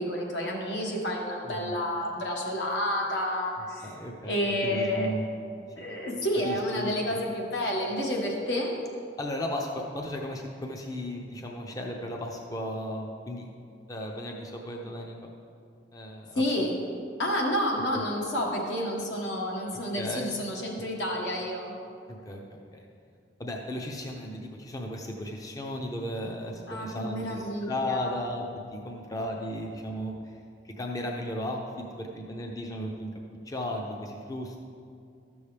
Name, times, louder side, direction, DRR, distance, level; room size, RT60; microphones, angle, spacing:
voice 1, 0.0-3.9 4.2-5.1 5.8-8.8 16.3-16.8 17.2-21.7 26.7-28.1, equal, 80° left, -2 dB, 1.5 m, -30 dB
voice 2, 3.8-5.3 5.8-5.9 6.4-6.9 9.2-13.5 13.9-15.3 15.9-16.7 17.9-18.0 19.9-20.3 20.7-20.9 22.1-22.8 23.4-33.1 33.4-34.6, left 1 dB, 20° left, 1 dB, 0.5 m, -35 dB
12.5 x 7.0 x 3.3 m, 2.4 s
head